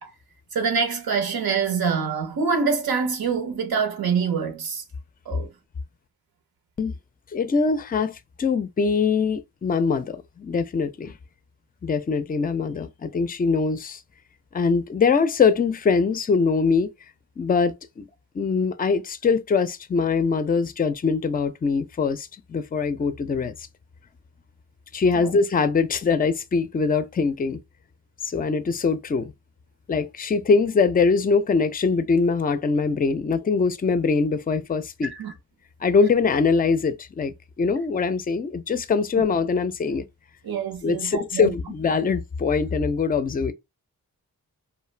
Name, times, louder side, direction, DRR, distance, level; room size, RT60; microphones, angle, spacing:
voice 1, 0.5-4.8 5.3-5.5 25.1-25.3 35.0-35.3 40.4-41.5, right 5 dB, 85° right, 0.8 m, -25 dB
voice 2, 7.3-11.2 11.8-14.0 14.5-16.9 17.4-18.1 18.3-23.5 24.9-27.6 28.2-29.3 29.9-35.1 35.8-40.0 40.8-43.5, left 5 dB, 25° left, 0.4 m, -23 dB
2.4 x 2.2 x 3.2 m
cardioid pair, 65°, 36 cm